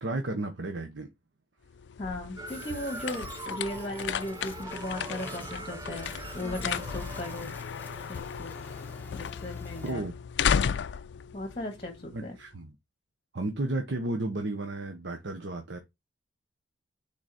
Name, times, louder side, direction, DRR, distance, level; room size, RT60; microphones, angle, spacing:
voice 1, 0.0-1.1 9.8-10.1 12.1-12.7 13.3-15.8, right 2 dB, 75° right, 1.0 m, -33 dB
sound 1, 1.7-12.4, left 7 dB, 65° left, 0.3 m, -34 dB
voice 2, 2.0-6.1 6.3-7.5 8.1-8.6 9.1-10.0 11.3-12.4, left 1 dB, 30° left, 1.6 m, -37 dB
sound 2, 2.4-9.0, right 2 dB, 20° right, 0.7 m, -43 dB
sound 3, 2.5-9.9, left 2 dB, 10° left, 1.2 m, -48 dB
6.3 x 4.0 x 4.2 m
head